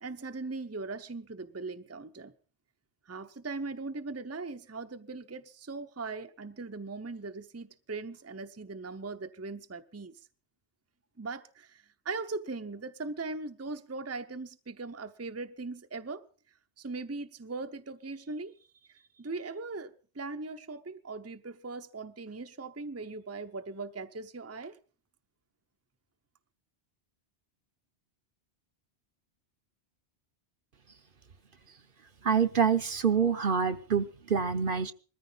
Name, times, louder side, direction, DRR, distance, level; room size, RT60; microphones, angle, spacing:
voice 1, 0.0-2.3 3.1-10.2 11.2-16.2 16.8-18.5 18.9-24.8, right 3 dB, 15° right, 0.7 m, -39 dB
voice 2, 32.2-34.9, right 6 dB, 55° right, 1.1 m, -26 dB
21.0 x 14.0 x 4.0 m
omnidirectional pair, 1.1 m